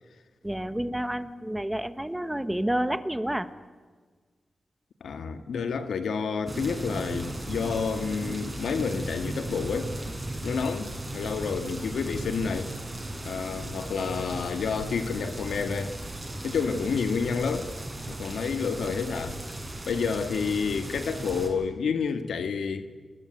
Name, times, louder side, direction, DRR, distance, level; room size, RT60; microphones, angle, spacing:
voice 1, 0.4-3.5, right 1 dB, 10° right, 1.4 m, -29 dB
voice 2, 5.0-9.9 10.4-12.7 13.2-16.0 16.4-17.7 18.1-19.4 19.9-22.9, left 5 dB, 90° left, 1.9 m, -29 dB
sound 1, 6.5-21.5, right 1 dB, 25° right, 7.5 m, -36 dB
29.5 x 21.0 x 9.5 m
cardioid pair, 75°, 0 cm